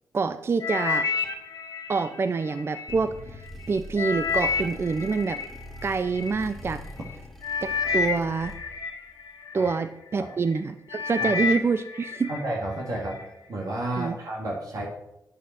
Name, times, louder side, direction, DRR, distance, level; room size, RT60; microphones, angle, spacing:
voice 1, 0.1-1.1 1.9-5.4 5.8-6.8 7.6-8.5 9.5-12.3 14.0-14.2, right 4 dB, 35° right, 11 dB, 0.5 m, -26 dB
sound 1, 0.6-2.9 3.5-6.3 7.0-7.1 7.4-9.8 10.3-10.6 10.9-12.4 12.8-13.2 13.8-13.9, left 5 dB, 65° left, 2.2 m, -30 dB
sound 2, 2.9-8.9, left 1 dB, ahead, 2.7 m, -43 dB
voice 2, 12.3-13.2 13.5-14.9, right 1 dB, 60° right, -3 dB, 2.4 m, -31 dB
9.4 x 8.3 x 6.0 m, 0.89 s
cardioid pair, 95°, 7 cm